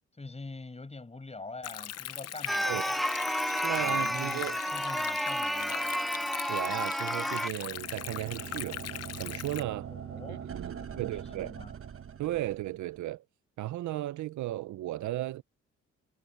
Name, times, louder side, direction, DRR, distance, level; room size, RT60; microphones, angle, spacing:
voice 1, 0.1-3.0 3.7-6.0 9.9-10.4 10.7-11.8, left 3 dB, 20° left, 6.7 m, -45 dB
Stream, 1.6-9.6, left 11 dB, 55° left, 0.7 m, -40 dB
sound 1, 2.5-7.5, equal, ahead, 1.4 m, -31 dB
voice 2, 3.6-4.6 6.5-8.8 9.2-9.9 10.3-11.6 12.2-13.2 13.6-15.4, right 15 dB, 70° right, 0.7 m, -35 dB
sound 2, 7.4-13.0, right 8 dB, 45° right, 1.4 m, -42 dB
cardioid pair, 90°, 30 cm